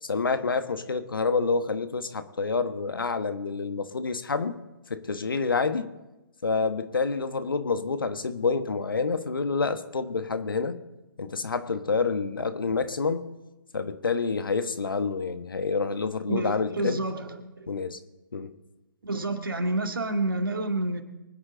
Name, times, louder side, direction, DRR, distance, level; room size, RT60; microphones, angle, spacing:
voice 1, 0.0-4.5 4.9-5.9 6.4-10.7 11.2-13.2 13.7-17.0 17.7-18.0 18.3-18.5, left 4 dB, 75° left, 10 dB, 1.3 m, -28 dB
voice 2, 16.3-17.7 19.0-21.0, right 2 dB, 75° right, 5 dB, 1.9 m, -29 dB
24.0 x 9.8 x 3.8 m, 1.0 s
figure-of-eight pair, 130°, 12 cm